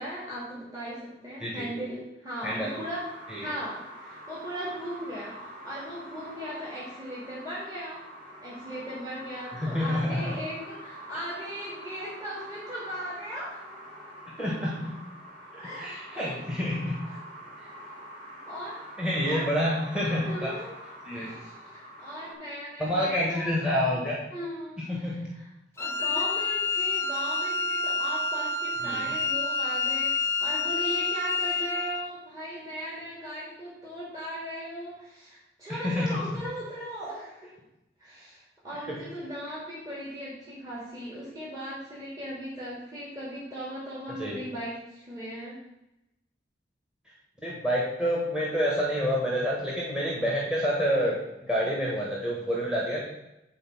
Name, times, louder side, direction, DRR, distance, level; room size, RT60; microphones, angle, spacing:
voice 1, 0.0-3.1 3.4-8.0 8.4-13.6 15.6-16.4 16.6-16.7 17.1-17.2 18.5-18.8 19.2-19.6 20.2-20.7 21.1-23.6 24.3-25.5 25.8-37.5 38.0-45.6, equal, 20° right, -7 dB, 2.2 m, -38 dB
sound 1, 2.4-22.3, right 1 dB, 40° right, 3.6 m, -45 dB
voice 2, 9.5-10.3 14.4-14.9 15.7-17.0 19.0-20.5 21.0-21.3 22.8-24.2 24.9-25.3 28.8-29.1 35.7-36.2 38.9-39.0 44.2-44.4 47.4-53.0, equal, 5° right, -4 dB, 1.4 m, -28 dB
Wind instrument woodwind instrument, 25.8-32.1, left 3 dB, 15° left, 0.3 m, -28 dB
9.3 x 4.3 x 6.0 m, 0.91 s
head